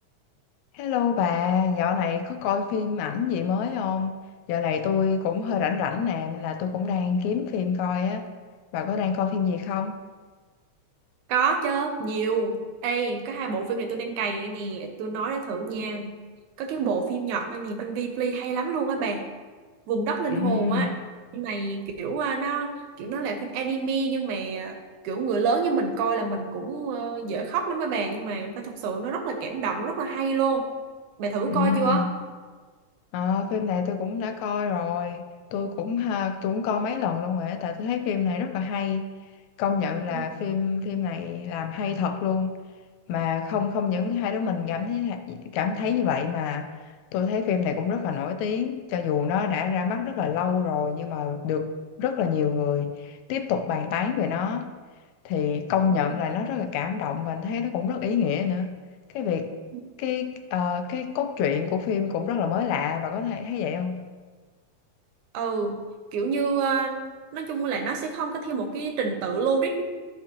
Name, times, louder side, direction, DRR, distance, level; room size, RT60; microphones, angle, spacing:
voice 1, 0.7-4.2 4.5-8.3 8.7-10.0 20.3-20.9 31.5-32.1 33.1-39.1 39.6-42.5 43.1-46.7 47.1-51.7 52.0-54.7 55.3-58.8 59.1-59.5 60.0-64.0, left 7 dB, 80° left, 1.9 m, -27 dB
voice 2, 11.3-12.6 12.8-16.1 16.6-19.2 19.9-20.9 21.3-22.7 23.0-24.8 25.0-30.7 31.2-32.1 40.1-40.2 43.9-44.0 56.1-56.2 59.7-59.8 65.3-65.8 66.1-67.0 67.3-69.8, right 5 dB, 90° right, 2.3 m, -27 dB
13.0 x 5.7 x 2.9 m
omnidirectional pair, 3.3 m